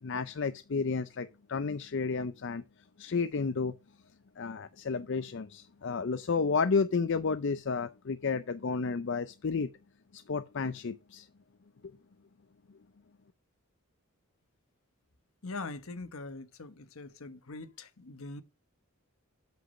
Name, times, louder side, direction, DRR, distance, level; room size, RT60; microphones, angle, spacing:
voice 1, 0.0-2.6 3.0-3.7 4.4-9.7 10.1-11.3 11.8-11.9, left 4 dB, 55° left, 0.5 m, -31 dB
voice 2, 15.4-18.4, left 3 dB, 70° left, 1.1 m, -42 dB
8.3 x 6.0 x 6.3 m
head